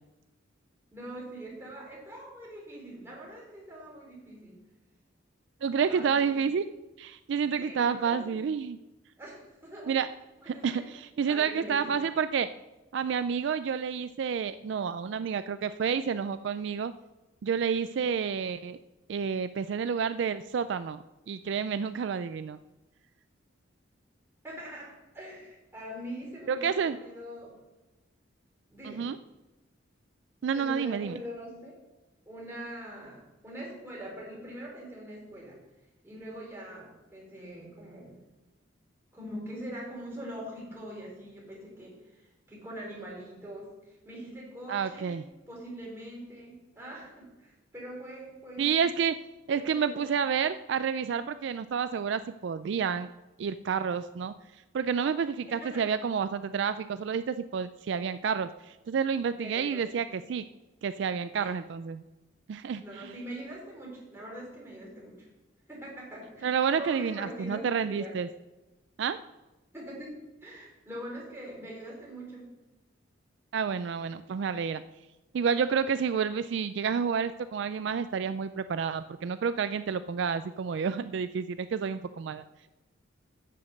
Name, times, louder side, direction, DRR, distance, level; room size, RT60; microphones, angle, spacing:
voice 1, 0.9-4.6 5.9-6.4 7.5-8.2 9.2-10.0 10.4-10.8 11.3-12.0 24.4-27.5 28.7-29.1 30.5-31.7 32.2-35.6 36.0-38.2 39.1-45.2 45.5-48.9 49.5-50.2 55.5-55.9 59.4-59.8 60.1-60.2 61.4-61.5 62.8-65.3 65.7-68.1 69.7-72.5, right 1 dB, 10° right, -4 dB, 3.9 m, -43 dB
voice 2, 5.6-6.7 7.0-8.8 9.9-10.1 10.5-12.5 12.9-16.9 17.4-18.8 19.1-22.6 26.5-27.0 28.8-29.2 30.4-31.2 44.7-45.2 48.6-49.1 49.5-53.1 53.4-54.3 54.7-60.4 60.8-62.0 62.5-63.1 66.4-68.3 69.0-69.2 73.5-74.8 75.3-82.4, right 6 dB, 65° right, 12 dB, 0.3 m, -29 dB
8.4 x 7.1 x 6.5 m, 1.0 s
head